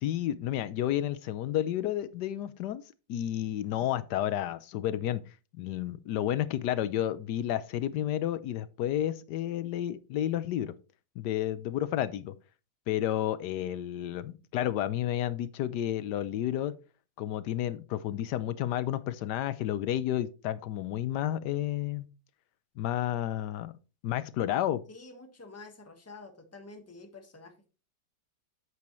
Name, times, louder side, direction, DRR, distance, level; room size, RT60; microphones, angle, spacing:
voice 1, 0.0-2.8 3.1-5.2 5.6-10.7 11.2-12.3 12.9-16.8 17.2-22.1 22.8-23.7 24.0-24.8, left 12 dB, 75° left, 1.3 m, -31 dB
voice 2, 24.9-27.7, left 3 dB, 10° left, 1.2 m, -49 dB
8.7 x 7.7 x 3.1 m
omnidirectional pair, 1.9 m